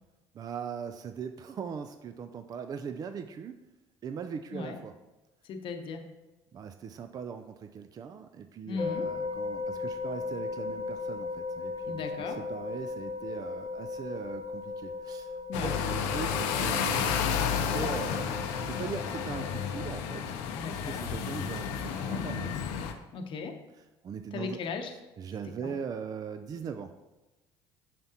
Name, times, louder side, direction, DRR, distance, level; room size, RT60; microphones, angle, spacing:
voice 1, 0.3-3.7 4.0-4.9 6.5-15.3 15.6-18.4 18.7-20.2 20.7-22.6 24.0-24.6 25.2-26.9, right 6 dB, 35° right, 8 dB, 0.4 m, -40 dB
voice 2, 5.4-6.1 8.7-9.1 11.9-12.4 15.5-15.8 20.5-21.1 23.1-23.6 24.3-24.9 25.4-25.8, left 4 dB, 55° left, 6 dB, 0.8 m, -37 dB
sound 1, 8.8-19.9, left 4 dB, 35° left, 1.0 m, -37 dB
sound 2, 15.5-22.9, left 7 dB, 90° left, 0.6 m, -31 dB
7.4 x 5.9 x 2.8 m, 1.1 s
supercardioid pair, 95°, 10 cm